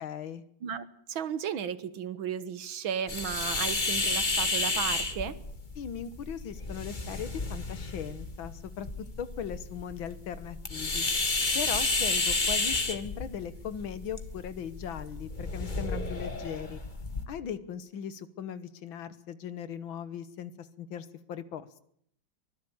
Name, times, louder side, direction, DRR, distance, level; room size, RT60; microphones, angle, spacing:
voice 1, 0.0-0.5 5.8-11.0 11.5-16.8 17.3-21.8, left 8 dB, 90° left, 14 dB, 2.0 m, -39 dB
voice 2, 0.6-5.3, right 8 dB, 90° right, 14 dB, 2.0 m, -34 dB
sound 1, 3.1-17.2, left 3 dB, 25° left, 1.9 m, -32 dB
23.5 x 16.5 x 8.8 m, 0.68 s
omnidirectional pair, 2.1 m